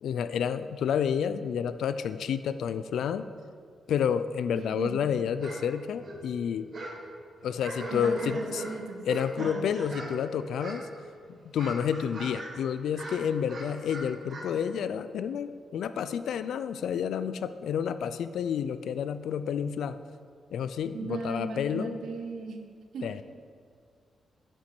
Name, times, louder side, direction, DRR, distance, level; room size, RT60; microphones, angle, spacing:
voice 1, 0.0-3.3 3.9-6.7 7.4-8.6 9.1-10.9 11.3-20.0 20.5-22.0 23.0-23.2, left 8 dB, 85° left, 12 dB, 0.3 m, -30 dB
voice 2, 4.5-5.1 7.9-9.0 9.4-9.7 20.9-22.6 22.9-23.2, right 4 dB, 70° right, 5 dB, 0.9 m, -37 dB
sound 1, 5.4-5.6 5.9-7.0 7.4-10.2 10.6-11.1 11.4-12.6 12.9-14.5, right 2 dB, 40° right, 1.3 m, -40 dB
8.6 x 5.2 x 5.9 m, 2.2 s
wide cardioid pair, 145°, 0 cm